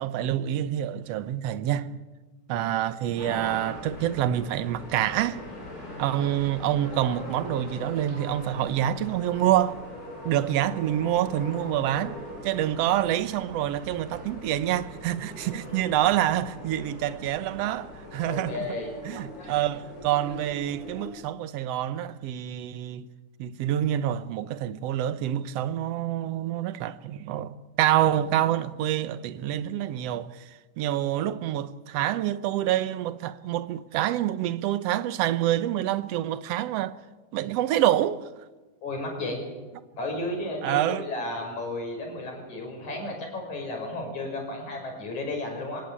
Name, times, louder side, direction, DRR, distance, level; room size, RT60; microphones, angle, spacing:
voice 1, 0.0-1.9 2.5-5.4 6.0-9.8 10.2-12.2 12.4-18.8 19.0-23.0 23.4-30.5 30.8-37.0 37.3-38.2 40.6-41.0, right 12 dB, 65° right, 1.8 m, -27 dB
sound 1, 3.1-21.1, left 1 dB, 30° left, 7.3 m, -41 dB
voice 2, 18.2-18.9 19.3-19.5 38.8-39.4 40.0-45.8, left 2 dB, 70° left, 7.4 m, -33 dB
24.5 x 18.5 x 8.8 m
omnidirectional pair, 3.4 m